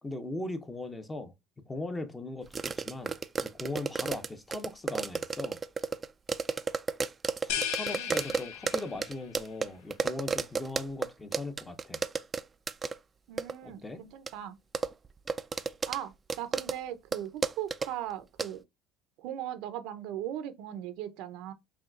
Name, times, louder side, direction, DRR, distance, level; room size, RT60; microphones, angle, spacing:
voice 1, 0.0-1.3 1.7-3.1 3.4-5.6 7.4-12.0 13.6-14.0, left 2 dB, 15° left, 0.7 m, -39 dB
sound 1, 2.5-11.1 11.3-12.4 12.7-13.0 13.4-13.5 14.3-14.4 14.7-16.0 16.3-16.7 17.1-17.2 17.4-17.9 18.4-18.5, right 5 dB, 25° right, 0.3 m, -31 dB
sound 2, 7.5-9.2, left 9 dB, 75° left, 0.5 m, -35 dB
voice 2, 7.8-8.1 13.3-14.6 15.9-18.6 19.2-21.5, right 11 dB, 70° right, 0.6 m, -38 dB
5.7 x 2.3 x 2.4 m
supercardioid pair, 90°, 0 cm